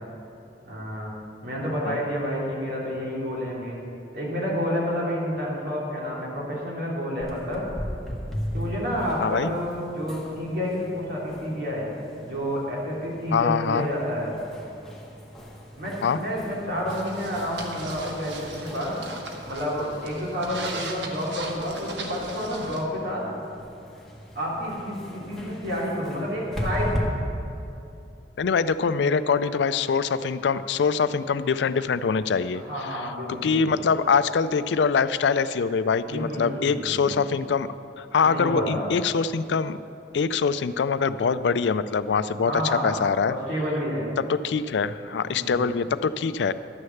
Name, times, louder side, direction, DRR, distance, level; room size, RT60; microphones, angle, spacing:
voice 1, 0.6-1.1 1.4-3.8 4.1-7.7 8.5-11.9 12.2-14.3 15.8-19.1 19.4-23.3 24.3-27.1 29.0-29.3 32.5-33.8 36.0-37.1 38.2-38.9 42.4-43.0 43.3-44.1 45.2-45.8, equal, 65° right, -5 dB, 3.1 m, -29 dB
sound 1, 7.2-27.0, equal, ahead, 1.5 m, -38 dB
voice 2, 13.3-13.9 16.0-16.2 28.4-32.6 32.9-33.0 33.3-37.7 38.0-39.8 40.1-43.3 44.3-46.5, left 5 dB, 80° left, 14 dB, 0.4 m, -24 dB
sound 2, 16.9-22.8, right 3 dB, 85° right, 1.2 m, -38 dB
12.0 x 6.5 x 7.1 m, 2.7 s
head